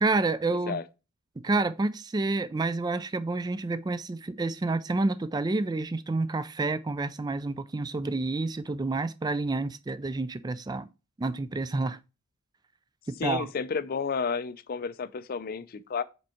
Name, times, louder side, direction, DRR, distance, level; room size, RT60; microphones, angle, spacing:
voice 1, 0.0-0.8 1.4-10.9 11.2-12.0 13.1-13.5, right 3 dB, 20° right, 0.3 m, -29 dB
voice 2, 13.2-16.0, left 5 dB, 45° left, 0.4 m, -31 dB
5.2 x 4.5 x 4.2 m
head